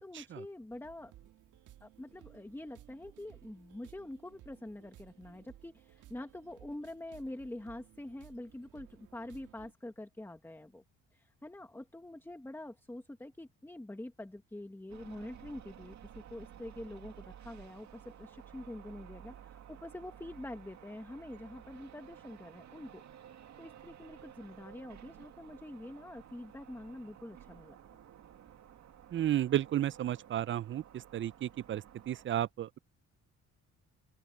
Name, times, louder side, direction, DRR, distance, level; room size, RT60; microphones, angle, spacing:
voice 1, 0.0-1.1 1.8-10.8 11.1-23.0 23.6-27.8, left 1 dB, 5° left, 1.6 m, -46 dB
sound 1, 0.7-9.7, right 13 dB, 85° right, 1.7 m, -58 dB
sound 2, 14.9-32.3, right 10 dB, 65° right, 2.3 m, -54 dB
voice 2, 29.1-30.8 31.1-32.8, right 11 dB, 40° right, 0.4 m, -33 dB
open air
cardioid pair, 90°, 30 cm